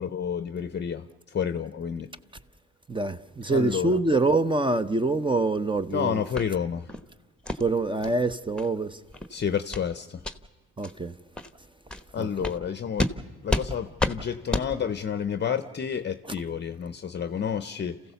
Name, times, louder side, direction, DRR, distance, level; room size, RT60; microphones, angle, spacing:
voice 1, 0.0-2.1 3.5-4.0 5.9-6.9 9.3-10.2 12.1-13.1 13.4-18.0, left 7 dB, 35° left, 0.7 m, -30 dB
voice 2, 2.9-6.2 7.6-9.0 10.8-11.1 12.2-12.3, right 3 dB, 15° right, 0.7 m, -25 dB
sound 1, 6.4-6.5 6.9-7.0 7.5-7.6 8.0-8.1 8.6-8.7 9.1-9.3 9.7-9.9 10.2-10.4 10.8-10.9 11.4-11.5 11.9-12.0 12.4-12.6 13.0-13.1 13.5-13.7 14.0-14.2 14.5-14.7, left 2 dB, 5° left, 1.0 m, -29 dB
27.5 x 15.5 x 6.9 m
cardioid pair, 90°, 30 cm